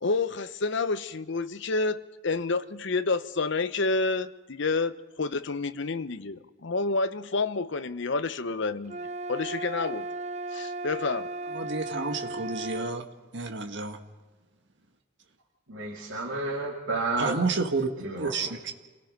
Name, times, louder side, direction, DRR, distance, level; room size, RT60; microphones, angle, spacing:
voice 1, 0.0-9.0 9.3-10.1 10.5-11.3, left 3 dB, 60° left, 12 dB, 0.8 m, -29 dB
sound 1, 8.9-13.0, right 2 dB, 35° right, 0.6 m, -36 dB
voice 2, 11.6-13.0 13.3-14.0 17.2-17.9 18.2-18.7, right 3 dB, 60° right, 4 dB, 1.7 m, -30 dB
voice 3, 15.7-17.3 18.0-18.5, right 3 dB, 80° right, -3 dB, 2.7 m, -31 dB
27.5 x 17.5 x 5.4 m, 1.2 s
head